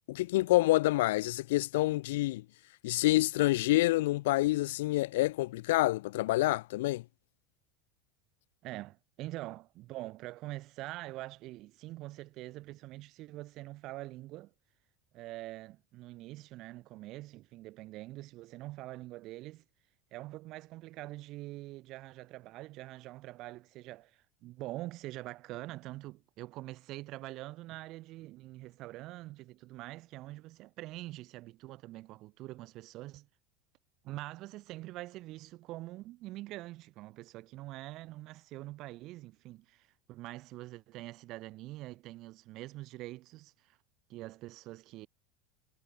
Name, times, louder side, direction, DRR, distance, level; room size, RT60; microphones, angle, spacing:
voice 1, 0.1-2.4 2.8-7.0, left 18 dB, 70° left, 0.4 m, -27 dB
voice 2, 8.6-14.5 15.1-19.6 20.1-33.3 34.0-43.8 44.1-45.1, right 18 dB, 50° right, 1.5 m, -45 dB
hypercardioid pair, 80°, 0 cm